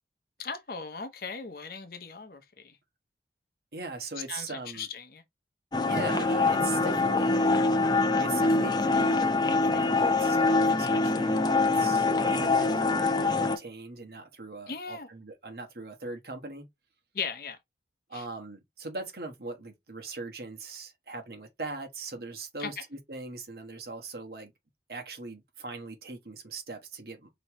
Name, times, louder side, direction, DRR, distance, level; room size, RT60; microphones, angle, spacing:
voice 1, 0.4-2.8 4.3-5.2 14.7-15.1 17.1-17.6 18.1-18.2 22.6-22.7, left 5 dB, 55° left, 0.8 m, -38 dB
voice 2, 3.7-4.9 5.8-7.7 8.2-9.2 9.6-16.7 18.1-24.5 24.9-27.3, right 3 dB, 60° right, 1.3 m, -40 dB
sound 1, 5.7-13.6, left 3 dB, 25° left, 0.6 m, -24 dB
5.4 x 3.1 x 3.0 m
head